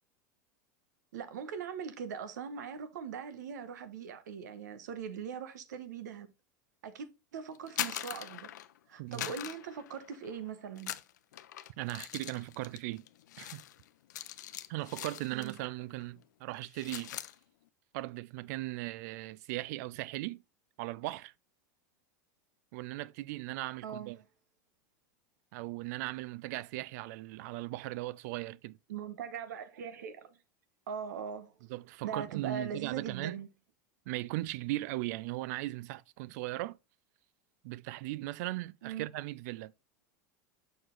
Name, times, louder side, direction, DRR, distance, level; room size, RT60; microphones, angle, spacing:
voice 1, 1.1-6.3 6.8-8.5 8.9-10.9 15.3-15.6 23.8-24.2 28.9-30.4 30.9-31.5 32.0-33.5 38.8-39.1, right 7 dB, 85° right, 1.0 m, -41 dB
sound 1, 7.5-8.8 9.1-10.4 10.8-15.7 16.0-16.2 16.5-17.3, left 12 dB, 85° left, 0.5 m, -42 dB
voice 2, 9.0-9.3 11.8-13.1 13.4-13.6 14.7-17.2 17.9-20.4 20.8-21.3 22.7-24.2 25.5-28.8 31.7-33.4 34.1-36.8 37.6-39.7, right 18 dB, 65° right, 0.4 m, -38 dB
6.3 x 4.7 x 3.8 m
hypercardioid pair, 110°, 9 cm